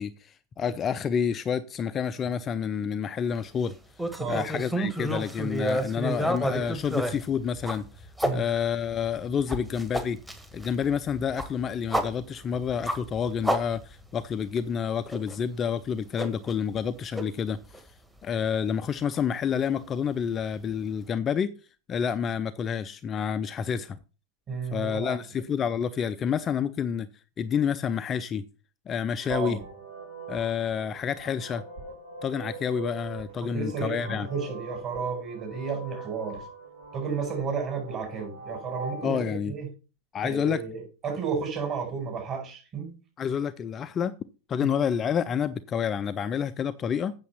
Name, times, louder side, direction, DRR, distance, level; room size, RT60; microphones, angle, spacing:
voice 1, 0.0-3.7 4.3-10.2 10.5-17.8 18.2-21.5 21.9-24.0 24.7-27.1 27.4-28.4 28.9-29.6 30.3-31.6 32.2-34.3 39.0-39.5 40.1-40.6 43.2-44.1 44.5-47.1, left 7 dB, 25° left, 0.5 m, -29 dB
sound 1, 4.0-8.3 8.9-14.2 14.6-14.7 15.1-15.4 16.2-16.9 17.2-17.3 17.7-17.8 19.1-19.2, right 1 dB, 5° right, 1.5 m, -30 dB
voice 2, 24.5-25.2 29.3-29.6 33.4-36.5 36.9-39.7 40.2-42.9 44.6-44.7, right 5 dB, 30° right, 5.4 m, -32 dB
sound 2, 29.2-39.2, right 4 dB, 70° right, 3.7 m, -43 dB
8.4 x 6.7 x 5.7 m
figure-of-eight pair, 90°, 0 cm